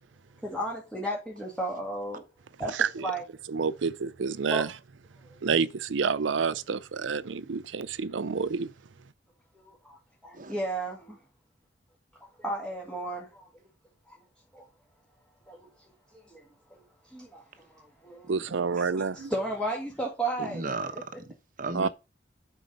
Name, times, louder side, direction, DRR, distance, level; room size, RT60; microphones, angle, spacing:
voice 1, 0.4-2.2 2.6-2.7 3.0-3.2 4.5-4.6 5.2-5.4 9.5-11.2 12.2-13.5 14.1-14.2 14.5-14.6 15.5-18.3 18.7-20.7 20.9-21.0, right 1 dB, 5° left, 1.8 m, -35 dB
voice 2, 2.7-4.8 5.4-8.7 18.3-19.3 21.7-21.9, right 5 dB, 85° right, 0.5 m, -29 dB
voice 3, 20.4-21.9, right 3 dB, 45° right, 1.1 m, -36 dB
7.8 x 4.8 x 5.3 m
head